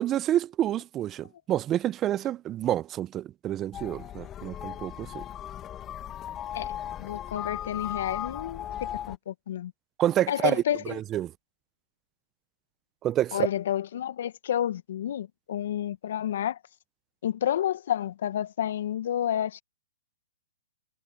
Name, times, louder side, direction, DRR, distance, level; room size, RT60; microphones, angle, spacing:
voice 1, 0.0-5.2 10.0-11.3 13.0-13.5, right 12 dB, 25° right, 0.9 m, -28 dB
sound 1, 3.7-9.2, left 11 dB, 20° left, 2.7 m, -37 dB
voice 2, 7.0-8.7 8.9-9.7 10.3-11.0 13.3-16.6 17.2-19.6, left 10 dB, 60° left, 1.9 m, -30 dB
hypercardioid pair, 130°, 0 cm